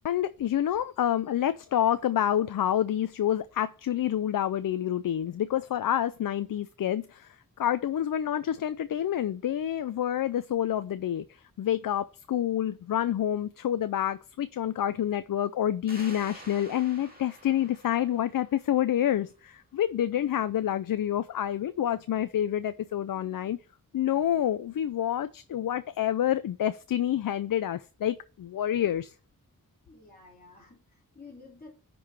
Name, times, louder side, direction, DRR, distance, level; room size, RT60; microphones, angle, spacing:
voice 1, 0.0-11.2 11.6-23.6 23.9-29.1, left 11 dB, 70° left, 0.5 m, -28 dB
sound 1, 15.9-19.2, right 1 dB, 25° right, 1.8 m, -49 dB
voice 2, 29.9-31.7, left 3 dB, 25° left, 3.4 m, -51 dB
10.0 x 3.9 x 4.8 m
wide cardioid pair, 130°, 34 cm